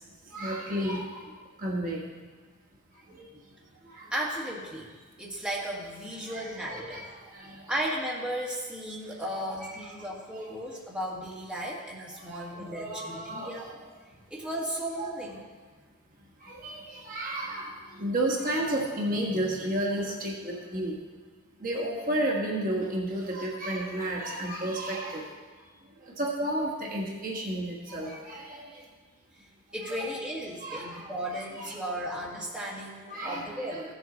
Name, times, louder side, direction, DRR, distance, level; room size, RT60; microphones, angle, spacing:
voice 1, 0.3-1.2 1.6-2.0 3.2-3.3 3.9-4.1 6.3-7.6 9.7-9.9 10.3-10.6 12.3-13.8 15.0-15.1 16.4-17.7 18.0-21.0 21.6-25.3 26.2-28.7 29.8-30.0 30.6-31.8 33.1-33.8, right 1 dB, 40° right, -2 dB, 1.4 m, -32 dB
voice 2, 4.1-4.9 5.2-7.0 7.7-13.6 14.3-15.4 29.7-33.8, equal, 5° right, -5 dB, 1.6 m, -35 dB
15.5 x 7.2 x 3.9 m, 1.4 s
head